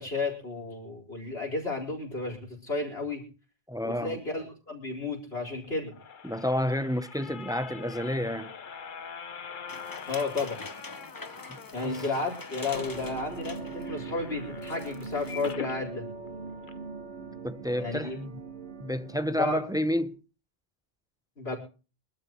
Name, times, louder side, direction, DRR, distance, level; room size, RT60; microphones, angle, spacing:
voice 1, 0.0-3.2 3.8-5.9 10.1-10.6 11.7-16.0 17.8-18.2 19.4-19.6 21.4-21.6, left 3 dB, 70° left, 4.7 m, -32 dB
voice 2, 3.7-4.2 6.2-8.5 11.5-11.6 11.8-12.0 17.4-18.3 18.8-20.2, left 1 dB, 5° right, 0.5 m, -30 dB
sound 1, 5.6-15.8 16.3-16.4 16.6-16.7, left 6 dB, 50° left, 1.0 m, -44 dB
sound 2, 9.7-13.9 14.3-14.4 14.6-15.5, left 3 dB, 20° left, 0.9 m, -44 dB
sound 3, 12.7-20.1, right 4 dB, 90° right, 1.8 m, -41 dB
24.5 x 12.5 x 3.0 m
omnidirectional pair, 1.1 m